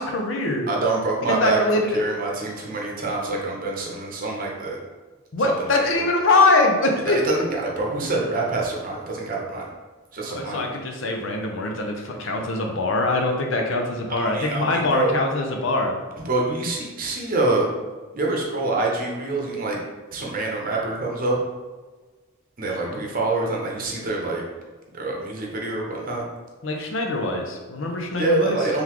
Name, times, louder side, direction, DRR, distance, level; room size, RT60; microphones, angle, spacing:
voice 1, 0.0-0.7 1.3-2.0 5.3-7.4 10.3-15.9 22.8-23.0 26.6-28.6, left 2 dB, 65° left, 1 dB, 0.6 m, -23 dB
voice 2, 0.7-4.8 5.4-6.0 7.1-9.6 10.1-10.7 14.1-15.1 16.2-17.7 18.1-19.8 20.1-21.4 22.6-24.4 24.9-26.2 28.1-28.8, right 2 dB, 45° right, -2 dB, 0.8 m, -26 dB
3.9 x 3.5 x 3.0 m, 1.3 s
head